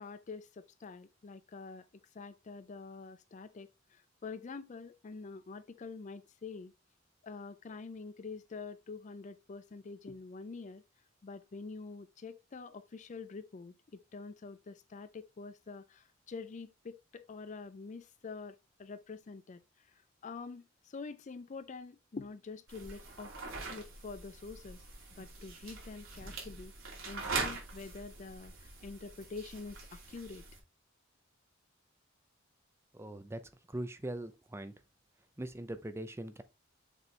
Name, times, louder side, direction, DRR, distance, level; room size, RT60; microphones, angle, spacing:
voice 1, 0.0-1.9 2.1-6.7 7.2-10.8 11.2-19.6 20.2-23.3 23.7-24.8 25.1-26.7 27.1-30.4, left 4 dB, 35° left, 0.4 m, -46 dB
sound 1, 22.7-30.6, right 4 dB, 80° right, 2.6 m, -43 dB
voice 2, 32.9-33.4 33.7-34.7 35.4-36.4, right 1 dB, 15° right, 0.6 m, -41 dB
6.7 x 4.5 x 3.2 m
head